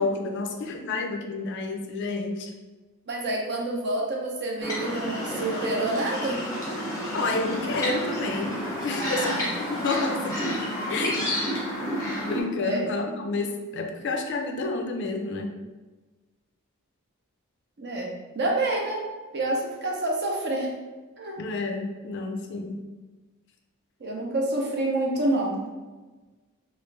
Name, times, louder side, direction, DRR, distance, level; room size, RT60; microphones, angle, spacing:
voice 1, 0.0-2.5 7.1-8.6 8.8-10.6 10.9-11.3 12.2-15.5 21.4-22.8, left 3 dB, 50° left, 3 dB, 0.4 m, -29 dB
voice 2, 3.1-6.4 8.9-9.4 11.7-11.9 12.6-12.9 17.8-19.0 19.3-20.7 21.2-21.4 24.0-25.6, right 2 dB, 50° right, -1 dB, 0.6 m, -28 dB
sound 1, 4.6-12.4, equal, 15° left, 0.7 m, -30 dB
3.1 x 2.4 x 3.2 m, 1.2 s
head